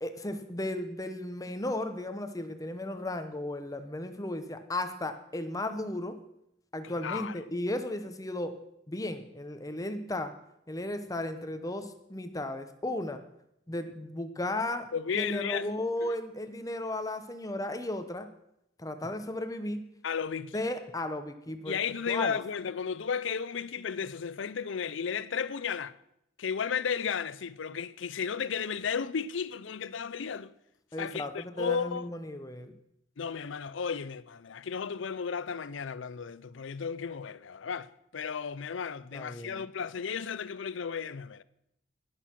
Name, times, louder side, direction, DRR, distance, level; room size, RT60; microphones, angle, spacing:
voice 1, 0.0-6.2 6.7-8.6 8.9-10.3 10.7-13.2 13.7-14.9 15.1-18.3 18.8-19.9 20.5-21.8 22.1-22.4 30.9-32.8 39.1-39.7, left 1 dB, 20° left, 0.8 m, -35 dB
voice 2, 6.8-7.3 14.9-15.7 16.0-16.1 20.0-20.6 21.7-25.9 26.4-30.5 31.0-32.1 33.2-41.4, left 6 dB, 75° left, 0.5 m, -34 dB
18.0 x 6.5 x 5.8 m
head